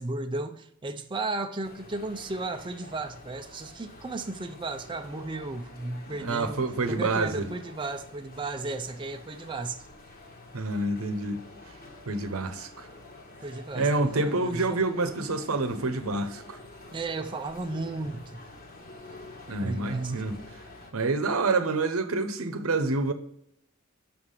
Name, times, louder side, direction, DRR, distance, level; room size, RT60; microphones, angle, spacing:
voice 1, 0.0-6.6 6.9-9.8 13.4-14.8 16.9-18.4 19.6-20.1, right 3 dB, 25° right, 0.5 m, -34 dB
sound 1, 1.6-20.9, left 2 dB, 45° left, 1.3 m, -48 dB
voice 2, 6.2-7.5 10.5-11.4 12.1-12.9 13.7-16.6 19.5-20.4 20.9-23.1, right 3 dB, 85° right, 0.8 m, -27 dB
5.9 x 5.7 x 6.6 m
head